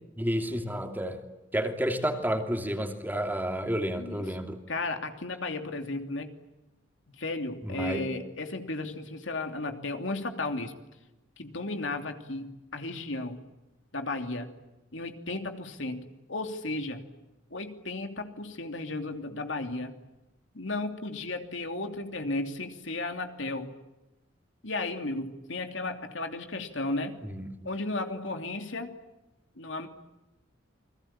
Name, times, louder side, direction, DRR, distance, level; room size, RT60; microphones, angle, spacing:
voice 1, 0.2-1.2 1.5-4.6 7.6-8.0 27.2-27.7, equal, 10° right, 5 dB, 2.8 m, -30 dB
voice 2, 4.7-6.3 7.2-10.7 11.4-13.4 13.9-14.5 14.9-16.0 16.3-17.0 17.5-19.9 20.5-23.7 24.6-27.2 27.6-28.9 29.6-29.9, left 2 dB, 70° left, 6 dB, 3.0 m, -34 dB
30.0 x 21.5 x 8.9 m, 0.99 s
head